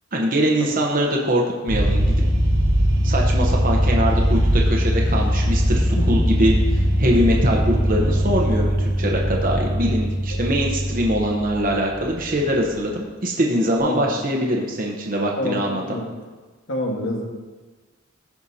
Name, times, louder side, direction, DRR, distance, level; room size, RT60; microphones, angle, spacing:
voice 1, 0.1-2.2 3.0-15.8, equal, 45° right, -1 dB, 0.9 m, -23 dB
sound 1, 1.7-12.3, equal, 85° right, 1.2 m, -20 dB
voice 2, 15.4-16.1 16.7-17.2, left 1 dB, 85° left, 0 dB, 1.6 m, -27 dB
15.0 x 5.6 x 2.8 m, 1.3 s
head